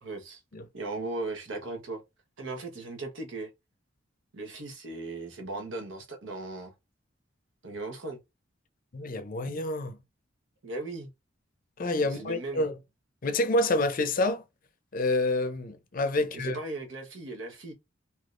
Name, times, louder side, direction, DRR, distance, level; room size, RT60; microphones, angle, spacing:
voice 1, 0.0-0.4 0.7-2.0 2.4-3.5 4.3-6.7 7.6-8.2 10.6-11.1 11.9-12.7 16.2-17.7, right 2 dB, 80° right, 1.1 m, -37 dB
voice 2, 8.9-10.0 11.8-12.8 13.2-14.4 14.9-16.6, left 2 dB, 45° left, 0.6 m, -28 dB
3.4 x 2.8 x 2.5 m
head